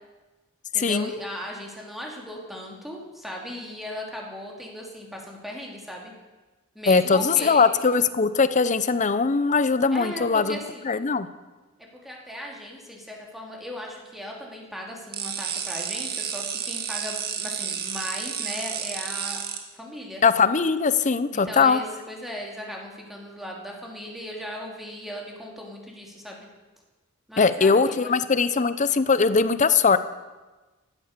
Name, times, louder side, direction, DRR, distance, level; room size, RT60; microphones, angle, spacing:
voice 1, 0.7-6.1 6.7-7.8 9.9-10.9 11.8-19.4 19.7-20.2 21.3-26.5 27.3-28.1, equal, ahead, -1 dB, 2.9 m, -37 dB
voice 2, 6.9-10.6 10.8-11.3 20.2-21.8 27.4-30.0, left 5 dB, 35° left, 14 dB, 0.7 m, -20 dB
sound 1, 15.1-19.6, right 8 dB, 50° right, 1.7 m, -31 dB
15.5 x 11.5 x 6.7 m, 1.2 s
head